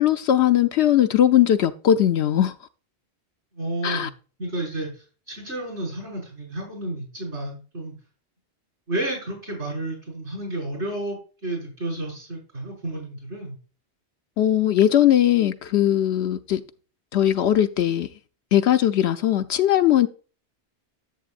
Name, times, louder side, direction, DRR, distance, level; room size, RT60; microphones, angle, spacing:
voice 1, 0.0-2.5 3.8-4.1 14.4-16.6 17.1-18.1 18.5-20.1, left 11 dB, 75° left, 0.9 m, -19 dB
voice 2, 3.6-4.1 4.4-4.9 5.3-7.9 8.9-11.2 11.4-13.6, right 1 dB, 80° right, 5.8 m, -31 dB
10.5 x 8.1 x 2.5 m
omnidirectional pair, 1.1 m